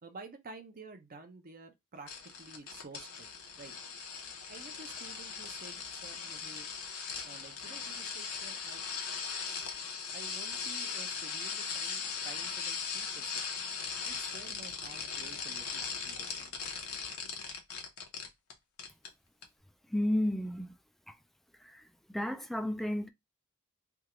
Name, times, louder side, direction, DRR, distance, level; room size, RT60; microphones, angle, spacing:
voice 1, 0.0-3.3 3.5-3.7 4.5-6.7 7.2-8.8 10.1-13.4 14.0-16.5, right 3 dB, 40° right, 0.7 m, -51 dB
sound 1, 2.1-18.5 18.8-19.1 19.4-19.5, left 6 dB, 85° left, 1.1 m, -39 dB
voice 2, 19.9-20.7 21.7-21.8 22.1-23.1, left 1 dB, ahead, 0.3 m, -32 dB
3.5 x 2.4 x 2.9 m
head